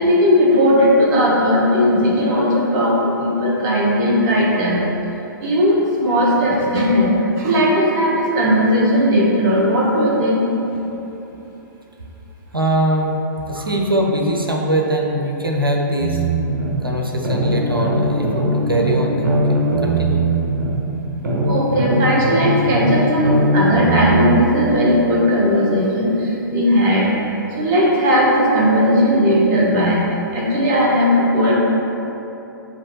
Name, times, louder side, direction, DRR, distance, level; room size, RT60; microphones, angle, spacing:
voice 1, 0.0-4.8 5.4-10.5 10.7-10.8 13.5-13.6 21.4-27.1 27.6-30.1 30.3-31.5, equal, 30° right, -4 dB, 0.8 m, -17 dB
voice 2, 12.5-13.2 13.5-16.2 16.8-20.3, right 1 dB, 90° right, 1 dB, 0.6 m, -22 dB
sound 1, 16.0-16.7 17.2-20.7 21.2-24.4, right 2 dB, 60° right, 0.9 m, -19 dB
7.1 x 2.5 x 2.9 m, 3.0 s
figure-of-eight pair, 115°, 11 cm